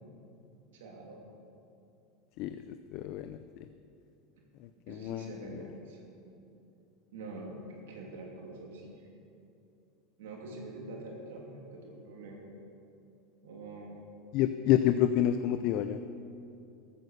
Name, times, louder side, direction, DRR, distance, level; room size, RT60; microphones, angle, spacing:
voice 1, 0.7-1.2 4.9-6.3 7.1-7.6 7.9-9.0 10.2-12.4 13.4-14.1, right 2 dB, 85° right, -1 dB, 2.9 m, -45 dB
voice 2, 2.9-3.4 4.9-5.3 14.3-16.0, left 11 dB, 60° left, 10 dB, 0.5 m, -28 dB
14.5 x 8.9 x 6.7 m, 2.7 s
supercardioid pair, 110°, 0 cm